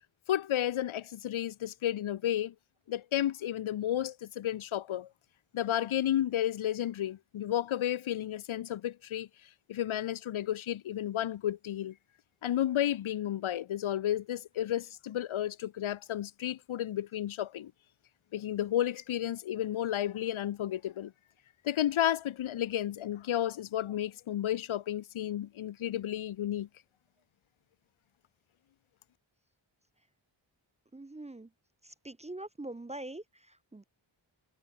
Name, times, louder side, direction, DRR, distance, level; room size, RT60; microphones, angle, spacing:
voice 1, 0.3-2.5 2.9-5.1 5.5-9.3 9.7-11.9 12.4-17.7 18.3-21.1 21.6-26.7, left 11 dB, 85° left, 0.7 m, -32 dB
voice 2, 30.9-31.5 32.0-33.2 33.7-33.8, right 2 dB, 15° right, 0.5 m, -42 dB
wide cardioid pair, 110°, 47 cm